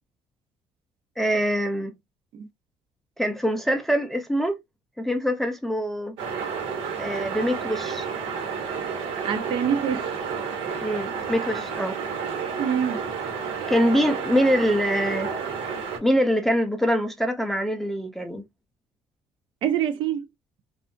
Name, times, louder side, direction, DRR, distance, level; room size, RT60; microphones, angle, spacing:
voice 1, 1.2-1.9 3.2-4.6 5.0-6.2 7.0-8.1 10.8-12.0 13.7-15.3 16.0-18.4, equal, 5° left, 0.3 m, -24 dB
sound 1, 6.2-16.0, right 6 dB, 75° right, 1.1 m, -31 dB
voice 2, 9.2-10.1 12.6-13.0 19.6-20.3, right 8 dB, 55° right, 0.5 m, -25 dB
2.6 x 2.3 x 2.5 m
cardioid pair, 165°, 10 cm